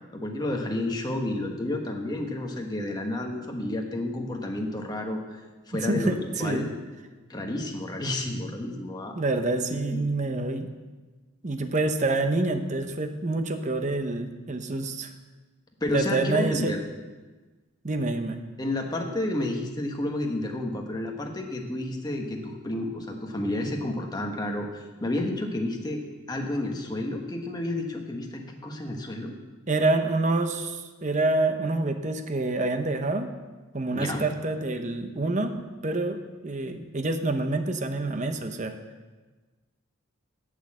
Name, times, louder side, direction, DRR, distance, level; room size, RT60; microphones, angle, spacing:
voice 1, 0.1-5.2 5.7-6.7 7.3-9.2 9.7-10.1 15.8-16.8 18.6-26.0 26.3-29.3 33.9-34.2, left 1 dB, 20° left, 2 dB, 1.3 m, -31 dB
voice 2, 5.7-6.7 9.2-10.7 11.4-15.1 15.9-16.7 17.8-18.4 29.7-33.3 33.7-36.2 36.4-38.7, right 2 dB, 35° right, 7 dB, 0.8 m, -27 dB
8.9 x 7.9 x 7.5 m, 1.3 s
head